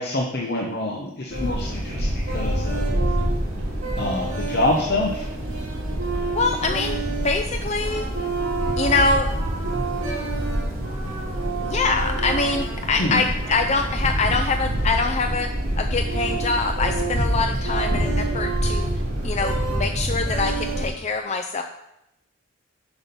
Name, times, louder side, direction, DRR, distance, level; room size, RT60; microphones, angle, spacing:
voice 1, 0.0-3.0 4.0-5.3 13.0-13.3, left 1 dB, 50° left, 0 dB, 0.8 m, -26 dB
sound 1, 1.3-20.9, right 1 dB, 70° right, 2.6 m, -26 dB
voice 2, 6.3-7.0 7.2-8.1 8.8-9.3 11.6-18.9 19.2-21.6, left 3 dB, 30° left, 6 dB, 0.4 m, -24 dB
8.1 x 6.1 x 5.3 m, 0.87 s
head